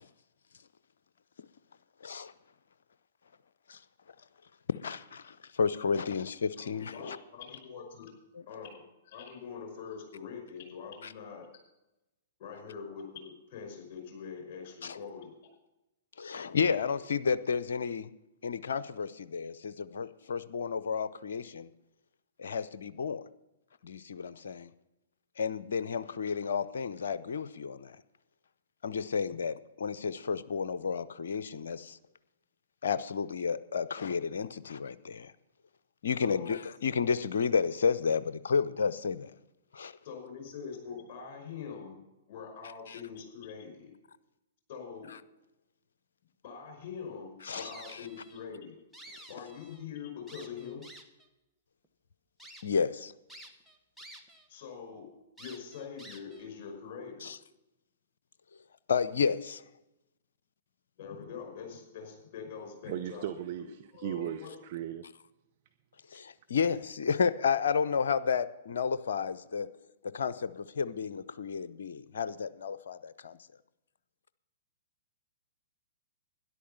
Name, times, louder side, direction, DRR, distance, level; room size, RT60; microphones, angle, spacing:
voice 1, 4.8-7.2 11.0-11.1 14.8-15.0 16.2-18.1 18.4-21.7 22.4-23.2 23.8-24.7 25.4-28.0 28.8-32.0 32.8-35.3 36.0-39.3 39.7-39.9 47.5-47.7 52.6-53.1 57.2-57.4 58.9-59.6 66.1-69.7 70.1-73.4, left 6 dB, 65° left, 16 dB, 0.6 m, -31 dB
voice 2, 6.6-8.1 8.5-11.5 12.4-15.3 36.2-36.6 40.0-42.0 42.3-43.9 44.7-45.1 46.4-48.8 49.3-50.8 54.5-55.1 55.4-57.3 61.0-63.3 63.6-64.6, left 6 dB, 45° left, 3 dB, 5.6 m, -44 dB
sound 1, 47.5-48.4 48.8-49.8 50.3-51.3 51.8-51.9 52.4-52.6 53.3-54.5 54.8-54.9 55.4-56.5, right 1 dB, ahead, 1.4 m, -50 dB
voice 3, 62.9-63.7 64.0-65.0, right 11 dB, 45° right, 8 dB, 0.7 m, -36 dB
13.0 x 11.0 x 5.6 m, 0.94 s
figure-of-eight pair, 110°, 0 cm